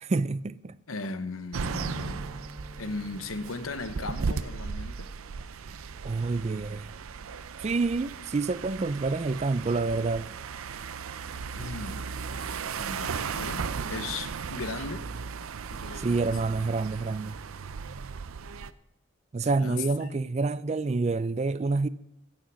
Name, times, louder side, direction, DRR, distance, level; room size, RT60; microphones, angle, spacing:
voice 1, 0.0-0.8 6.0-6.9 7.6-10.3 15.9-17.4 19.3-21.9, right 3 dB, 30° right, 0.3 m, -28 dB
voice 2, 0.9-2.3 2.8-5.1 11.5-12.1 12.7-15.1 15.7-16.2 19.4-20.2, left 3 dB, 85° left, 0.9 m, -37 dB
sound 1, 1.5-18.7, right 5 dB, 90° right, 0.5 m, -36 dB
Strum, 1.6-6.3 6.7-6.9, right 1 dB, 15° right, 0.7 m, -48 dB
15.5 x 6.5 x 6.3 m
head